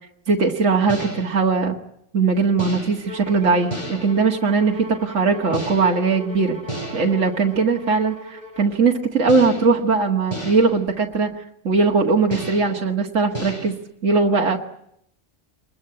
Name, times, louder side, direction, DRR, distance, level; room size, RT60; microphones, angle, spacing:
voice 1, 0.3-1.8 2.1-6.6 6.9-11.3 11.6-13.8 14.0-14.6, right 4 dB, 75° right, 1 dB, 2.1 m, -20 dB
sound 1, 0.9-1.4 2.6-3.1 3.7-4.2 5.5-6.1 6.7-7.3 9.3-9.8 10.3-10.8 12.3-12.8 13.3-13.7, right 1 dB, 25° left, 6.4 m, -32 dB
Bowed string instrument, 3.1-8.8, left 1 dB, 25° right, 4.5 m, -39 dB
25.5 x 21.0 x 9.9 m, 0.75 s
omnidirectional pair, 1.3 m